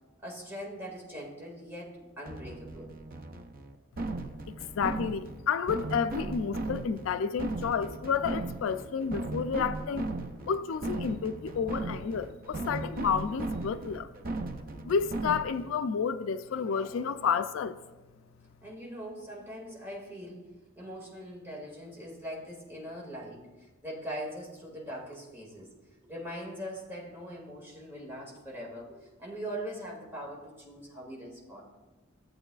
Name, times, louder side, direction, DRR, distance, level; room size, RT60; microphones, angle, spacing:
voice 1, 0.2-3.0 18.6-25.7 26.0-31.6, equal, 10° right, 2.0 m, -41 dB
sound 1, 2.3-15.8, right 2 dB, 45° right, 0.6 m, -37 dB
voice 2, 4.5-10.1 10.5-14.1 14.8-17.8, left 6 dB, 75° left, 0.3 m, -30 dB
14.5 x 7.8 x 2.4 m
head